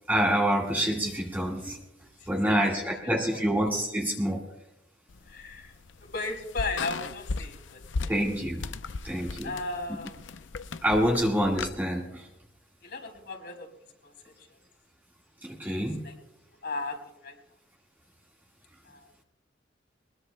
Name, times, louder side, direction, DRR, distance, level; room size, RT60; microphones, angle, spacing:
voice 1, 0.1-1.8 2.3-4.5 8.1-8.7 9.0-9.5 10.8-12.3 15.4-16.1, equal, 10° right, -2 dB, 1.7 m, -27 dB
voice 2, 2.2-2.5 3.3-3.5 5.3-5.7 6.0-8.1 9.4-10.1 12.8-13.7 14.0-14.5 16.0-16.1 16.6-17.4 18.8-19.1, left 3 dB, 65° left, 3 dB, 3.9 m, -36 dB
sound 1, 5.1-11.7, left 4 dB, 80° left, 0.6 m, -37 dB
22.5 x 20.5 x 2.2 m, 0.84 s
head